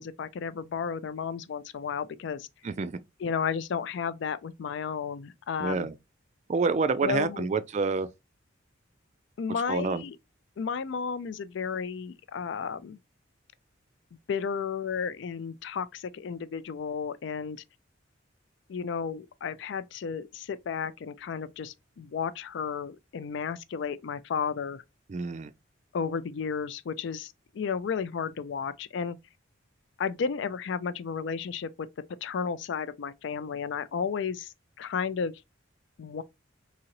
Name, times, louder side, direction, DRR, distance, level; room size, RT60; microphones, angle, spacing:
voice 1, 0.0-2.5 3.2-5.9 7.0-7.5 9.4-10.2 10.6-13.0 14.3-17.6 18.7-24.8 25.9-29.2 30.0-31.9 32.2-35.3 36.0-36.2, left 6 dB, 65° left, 0.4 m, -33 dB
voice 2, 2.6-3.0 5.6-5.9 6.5-8.1 9.7-10.0 25.1-25.5, right 4 dB, 35° right, 0.3 m, -28 dB
3.9 x 2.8 x 2.9 m
head